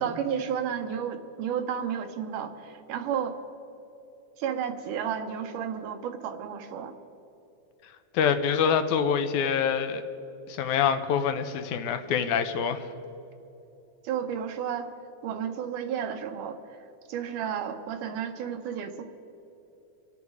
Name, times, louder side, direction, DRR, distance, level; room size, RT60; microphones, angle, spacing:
voice 1, 0.0-3.4 4.4-6.9 14.0-14.9 15.2-16.6 17.1-19.0, right 8 dB, 85° right, 7 dB, 2.4 m, -32 dB
voice 2, 8.1-10.0 10.5-12.9, left 7 dB, 80° left, 9 dB, 2.1 m, -25 dB
25.0 x 8.5 x 4.8 m, 3.0 s
omnidirectional pair, 3.6 m